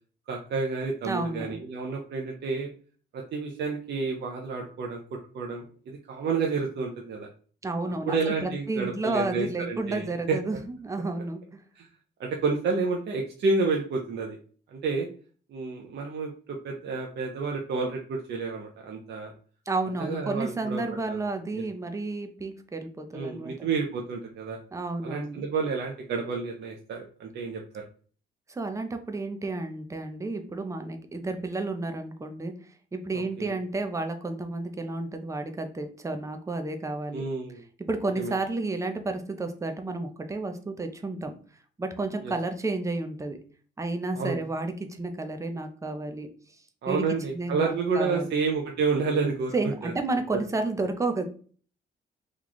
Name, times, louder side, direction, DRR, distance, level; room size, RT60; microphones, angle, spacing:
voice 1, 0.3-2.7 3.1-5.0 5.3-7.3 8.1-10.4 11.8-11.9 12.2-14.4 14.7-15.1 15.5-19.3 20.0-20.8 21.1-21.2 21.5-21.6 23.1-24.6 25.0-27.8 33.1-33.5 37.1-37.6 38.2-38.3 42.2-42.3 44.1-44.4 46.8-49.5 49.8-49.9, right 4 dB, 60° right, 1 dB, 0.6 m, -30 dB
voice 2, 1.0-1.6 7.6-11.6 19.7-23.5 24.7-25.5 28.5-37.2 37.9-41.3 41.8-43.4 43.8-46.3 46.9-47.0 47.3-48.3 49.5-51.2, right 2 dB, 15° right, 6 dB, 0.6 m, -31 dB
3.1 x 2.3 x 3.9 m, 0.42 s
cardioid pair, 90°, 20 cm